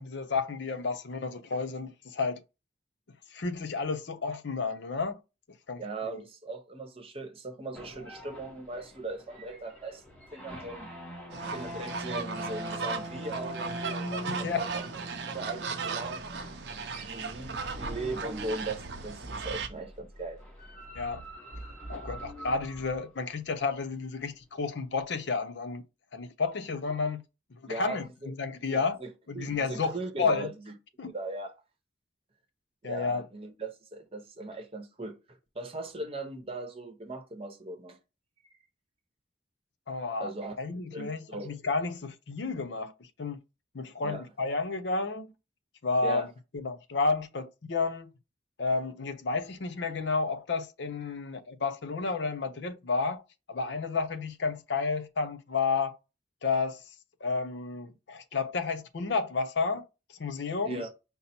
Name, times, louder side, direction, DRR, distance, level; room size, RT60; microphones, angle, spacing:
voice 1, 0.0-2.4 3.3-5.2 5.7-6.2 14.3-14.7 20.9-21.2 21.9-25.8 26.1-27.2 27.7-29.0 29.3-30.5 31.0-31.1 32.8-33.2 39.9-40.3 40.6-42.9 43.2-43.4 43.7-45.3 45.8-48.1 48.6-53.2 53.5-56.0 56.4-56.8 57.2-59.8 60.2-60.8, left 4 dB, 65° left, 0.6 m, -31 dB
voice 2, 5.8-10.9 11.5-14.8 15.2-16.4 17.0-20.4 27.7-28.3 28.6-29.1 29.3-30.7 31.1-31.5 32.8-38.0 40.2-40.6 40.9-41.5 44.0-44.2 46.0-46.3 60.6-60.9, right 2 dB, 30° right, 0.8 m, -39 dB
sound 1, 7.7-19.6 20.4-23.0, equal, 5° left, 0.9 m, -43 dB
sound 2, 11.3-19.7, right 4 dB, 60° right, 0.6 m, -37 dB
sound 3, 16.2-23.0, right 1 dB, 40° left, 1.5 m, -48 dB
5.4 x 2.0 x 4.2 m
head